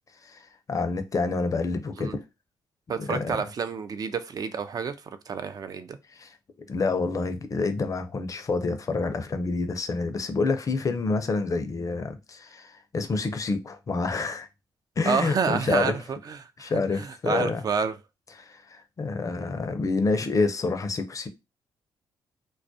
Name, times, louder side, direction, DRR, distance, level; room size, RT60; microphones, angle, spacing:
voice 1, 0.7-2.1 3.0-3.4 6.2-6.3 6.7-14.5 15.0-16.0 16.6-17.6 18.4-21.3, left 3 dB, 40° left, 0.5 m, -28 dB
voice 2, 2.9-4.9 5.3-6.0 15.0-18.0, right 6 dB, 45° right, 0.4 m, -29 dB
2.3 x 2.0 x 2.6 m
supercardioid pair, 55°, 9 cm